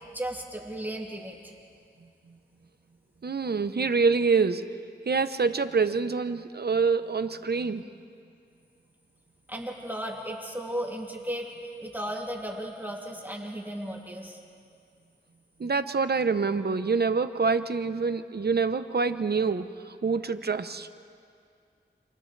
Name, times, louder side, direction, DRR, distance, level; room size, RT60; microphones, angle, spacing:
voice 1, 0.1-1.5 9.5-11.5 11.8-14.4, equal, 10° right, -1 dB, 2.7 m, -35 dB
voice 2, 3.2-4.6 5.1-7.8 15.6-20.9, right 4 dB, 60° right, 11 dB, 0.9 m, -26 dB
28.5 x 27.5 x 3.3 m, 2.3 s
wide cardioid pair, 50°, 19 cm